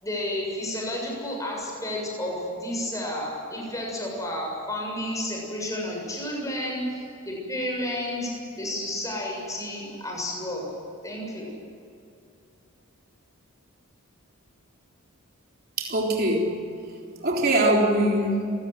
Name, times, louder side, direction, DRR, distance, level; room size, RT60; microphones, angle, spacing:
voice 1, 0.0-10.7 11.0-11.5, left 1 dB, 15° left, -1 dB, 7.1 m, -31 dB
voice 2, 15.8-16.6 17.2-18.5, right 1 dB, 45° right, -1 dB, 3.7 m, -22 dB
27.0 x 18.0 x 7.8 m, 2.6 s
head